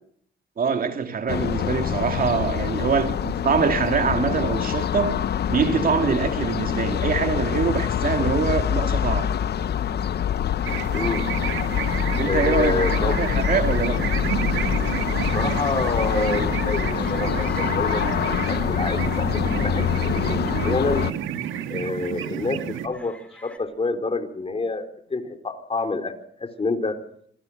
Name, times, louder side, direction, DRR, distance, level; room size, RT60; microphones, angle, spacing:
voice 1, 0.6-9.3 12.2-14.0, right 5 dB, 45° right, 2.4 m, -24 dB
sound 1, 1.3-21.1, left 9 dB, 55° left, 0.9 m, -25 dB
sound 2, 10.6-22.9, right 9 dB, 80° right, 2.0 m, -30 dB
sound 3, 10.8-23.6, left 1 dB, 5° left, 5.1 m, -50 dB
voice 2, 10.9-11.2 12.2-13.2 15.3-21.1 21.7-27.0, left 3 dB, 30° left, 3.7 m, -28 dB
27.0 x 19.5 x 6.5 m
cardioid pair, 90°, 20 cm